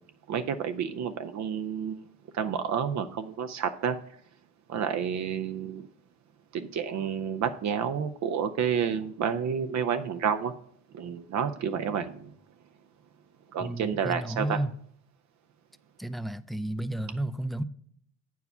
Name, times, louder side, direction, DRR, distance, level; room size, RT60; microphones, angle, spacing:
voice 1, 0.3-2.0 2.3-4.0 4.7-5.9 6.5-10.5 10.9-12.3 13.5-14.6, right 7 dB, 65° right, 0.6 m, -30 dB
voice 2, 13.6-14.7 16.0-17.6, right 1 dB, ahead, 0.3 m, -32 dB
8.0 x 4.7 x 5.5 m
cardioid pair, 90°, 30 cm